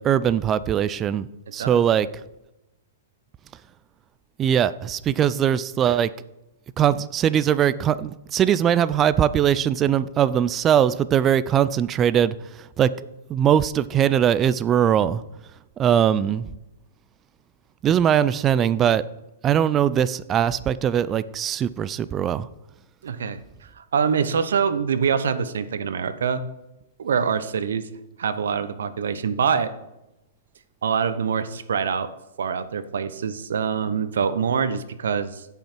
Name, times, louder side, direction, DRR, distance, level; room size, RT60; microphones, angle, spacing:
voice 1, 0.0-2.1 4.4-6.1 6.8-12.3 12.8-12.9 13.3-15.2 15.8-16.5 17.8-19.1 19.4-22.5, right 9 dB, 20° right, 16 dB, 0.3 m, -21 dB
voice 2, 23.0-23.4 23.8-26.4 27.0-27.9 28.2-29.7 30.8-32.1 32.4-35.5, right 6 dB, 85° right, 12 dB, 0.9 m, -24 dB
16.0 x 5.6 x 4.5 m, 0.94 s
hypercardioid pair, 165°, 0 cm